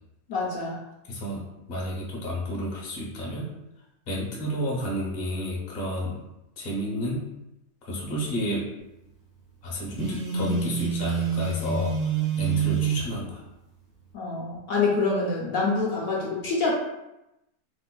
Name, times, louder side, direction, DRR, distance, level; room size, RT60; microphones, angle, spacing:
voice 1, 0.3-0.8 14.1-16.7, left 3 dB, 70° left, -4 dB, 1.0 m, -26 dB
voice 2, 1.1-3.5 4.1-6.2 6.6-7.2 7.9-8.7 9.6-12.0 12.4-13.4, equal, 45° left, -4 dB, 0.9 m, -31 dB
Telephone, 9.9-13.1, right 6 dB, 65° right, 1.2 m, -27 dB
3.3 x 2.9 x 2.2 m, 0.91 s
omnidirectional pair, 1.6 m